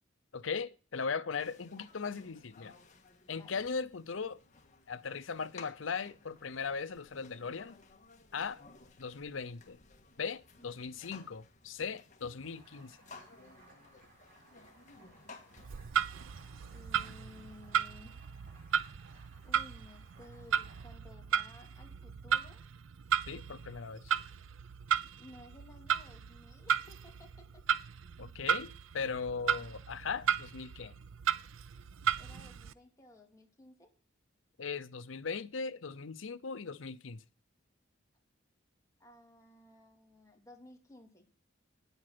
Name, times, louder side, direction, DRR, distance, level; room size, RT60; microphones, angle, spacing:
voice 1, 0.3-2.8 3.3-4.4 4.9-7.8 8.3-8.6 9.0-9.8 10.2-13.0 23.3-24.1 28.2-30.9 34.6-37.2, left 5 dB, 75° left, 0.7 m, -38 dB
sound 1, 1.4-15.7, left 3 dB, 40° left, 1.7 m, -57 dB
sound 2, 12.4-21.8, right 2 dB, 45° right, 5.5 m, -62 dB
Clock, 15.6-32.7, right 8 dB, 80° right, 0.5 m, -35 dB
voice 2, 16.7-18.2 19.4-22.6 25.2-27.7 32.2-33.9 39.0-41.3, left 2 dB, 15° left, 2.5 m, -56 dB
9.7 x 8.1 x 5.9 m
head